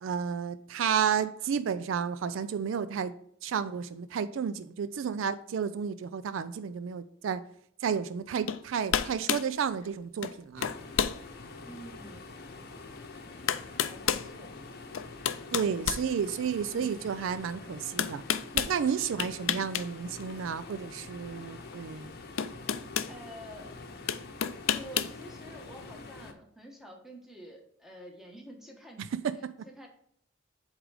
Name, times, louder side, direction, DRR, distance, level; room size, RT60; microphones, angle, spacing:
voice 1, 0.0-3.1 3.4-7.4 7.8-10.7 15.5-18.2 18.5-22.1 29.0-29.5, right 7 dB, 70° right, 0.4 m, -32 dB
sound 1, 8.5-8.6 8.9-9.5 10.2-10.4 10.6-11.2 11.8-11.9 13.0-13.1 13.5-14.3 14.9-16.6 18.0-18.7 19.2-19.9 20.2-20.3 21.7-21.8 22.4-23.1 24.1-25.2, left 9 dB, 70° left, 0.4 m, -30 dB
sound 2, 10.6-26.3, left 3 dB, 50° left, 0.8 m, -46 dB
voice 2, 11.6-12.3 13.9-14.6 16.7-17.1 23.1-23.7 24.7-29.1 29.6-29.9, equal, ahead, 1.2 m, -48 dB
8.0 x 3.7 x 4.9 m
head